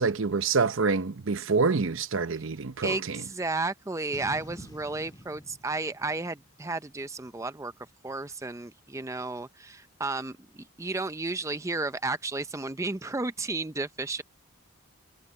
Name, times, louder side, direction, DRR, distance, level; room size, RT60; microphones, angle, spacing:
voice 1, 0.0-3.2, right 4 dB, 65° right, 0.7 m, -26 dB
voice 2, 2.8-7.7 8.0-14.2, right 3 dB, 15° right, 0.5 m, -33 dB
Boom, 4.1-7.4, equal, 20° left, 2.1 m, -49 dB
head